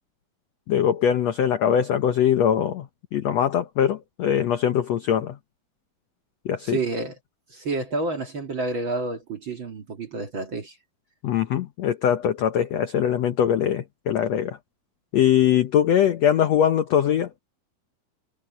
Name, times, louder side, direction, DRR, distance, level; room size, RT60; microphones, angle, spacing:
voice 1, 0.7-2.9 3.1-5.4 6.4-6.8 11.2-14.6 15.1-17.3, left 9 dB, 75° left, 1.6 m, -22 dB
voice 2, 6.7-7.2 7.5-10.8, right 3 dB, 40° right, 2.0 m, -29 dB
omnidirectional pair, 4.3 m